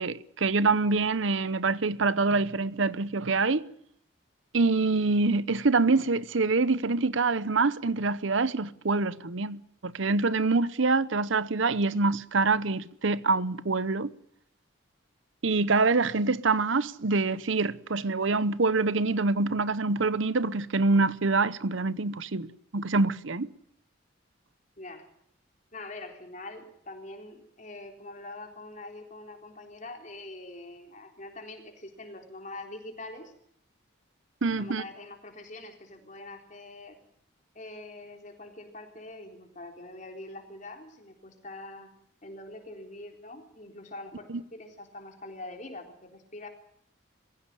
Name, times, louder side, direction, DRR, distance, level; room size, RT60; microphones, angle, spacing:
voice 1, 0.0-3.7 4.5-14.1 15.4-22.5 22.7-23.5 34.4-34.8 44.3-44.4, right 3 dB, 75° right, 0.8 m, -25 dB
voice 2, 24.8-25.1 25.7-33.3 34.6-37.0 37.5-41.9 42.2-46.5, left 2 dB, 40° left, 3.8 m, -44 dB
21.5 x 16.5 x 9.7 m
head